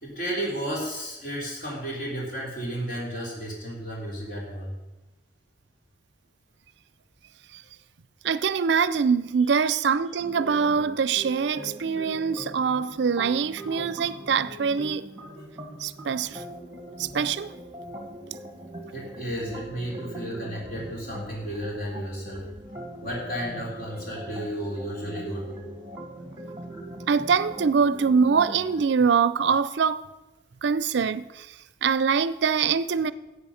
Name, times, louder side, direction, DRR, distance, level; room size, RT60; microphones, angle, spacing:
voice 1, 0.0-4.7 9.6-9.7 18.9-22.5 23.0-25.6, equal, 50° left, 3.4 m, -33 dB
voice 2, 8.2-15.0 15.8-16.4 17.0-17.5 27.1-30.0 30.6-31.5 31.8-33.1, right 6 dB, 65° right, 0.4 m, -24 dB
sound 1, 10.2-28.9, right 1 dB, 15° right, 1.5 m, -41 dB
12.0 x 8.2 x 5.7 m
head